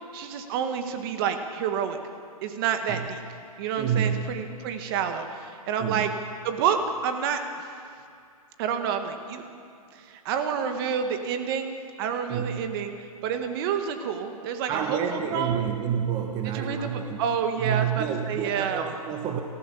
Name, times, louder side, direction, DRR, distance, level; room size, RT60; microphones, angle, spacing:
voice 1, 0.1-2.0 2.4-3.2 3.6-6.1 6.4-7.7 8.6-9.4 9.9-12.9 13.2-15.6 16.4-18.8, right 7 dB, 40° right, 6 dB, 1.7 m, -29 dB
voice 2, 3.8-4.4 5.8-6.2 12.3-12.6 14.7-17.2 17.6-19.4, right 8 dB, 25° right, 3 dB, 1.4 m, -29 dB
29.5 x 14.5 x 7.2 m, 2.4 s
hypercardioid pair, 140°, 19 cm